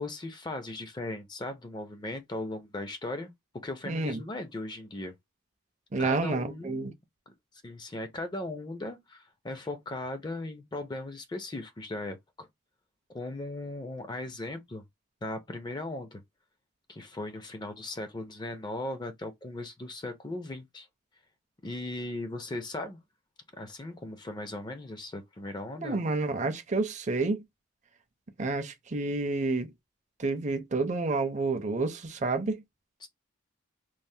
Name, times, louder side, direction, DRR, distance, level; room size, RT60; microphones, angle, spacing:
voice 1, 0.0-3.3 3.6-5.1 6.0-6.8 7.6-12.5 13.1-14.8 15.2-16.2 16.9-20.9 21.6-23.0 23.6-26.0 33.0-33.1, left 2 dB, 20° left, 0.4 m, -38 dB
voice 2, 3.9-4.2 5.9-6.9 25.8-27.4 28.4-29.7 30.2-32.6, right 3 dB, 35° right, 0.5 m, -29 dB
3.1 x 2.0 x 2.6 m
head